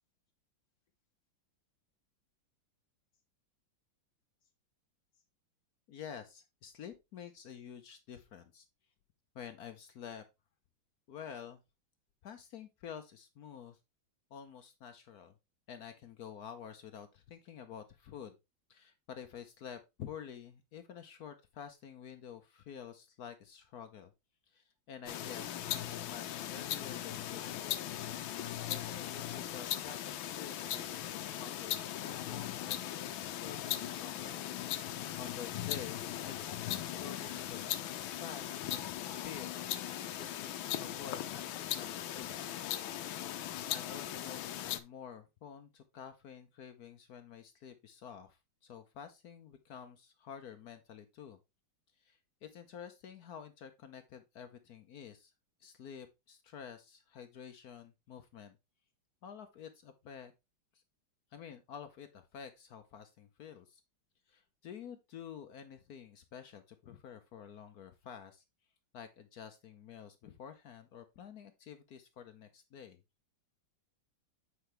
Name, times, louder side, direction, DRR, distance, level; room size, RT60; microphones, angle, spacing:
voice 1, 5.9-8.7 9.3-10.2 11.1-11.6 12.2-13.8 14.3-15.3 15.7-18.3 18.7-24.1 24.5-27.8 28.7-34.4 34.8-37.8 38.2-39.5 40.1-42.4 43.7-51.4 52.0-55.3 55.6-58.6 59.2-60.3 60.7-60.8 61.3-63.8 64.3-68.4 68.9-73.0, left 8 dB, 65° left, 8 dB, 1.1 m, -49 dB
sound 1, 25.1-44.8, left 12 dB, 85° left, 1.5 m, -39 dB
7.8 x 5.5 x 3.2 m, 0.23 s
omnidirectional pair, 2.1 m